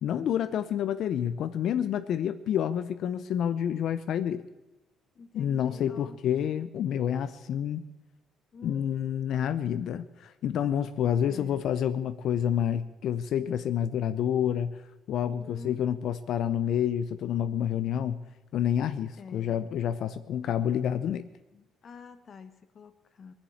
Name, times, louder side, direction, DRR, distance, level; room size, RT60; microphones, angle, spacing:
voice 1, 0.0-4.5 5.3-7.8 8.6-14.8 15.1-18.2 18.5-21.3, left 9 dB, 65° left, 11 dB, 0.6 m, -28 dB
voice 2, 5.1-6.2 8.5-9.3 11.3-11.7 15.4-15.8 19.2-19.5 21.5-23.3, left 5 dB, 45° left, 10 dB, 1.2 m, -48 dB
20.5 x 7.3 x 8.6 m, 1.0 s
cardioid pair, 110°, 0 cm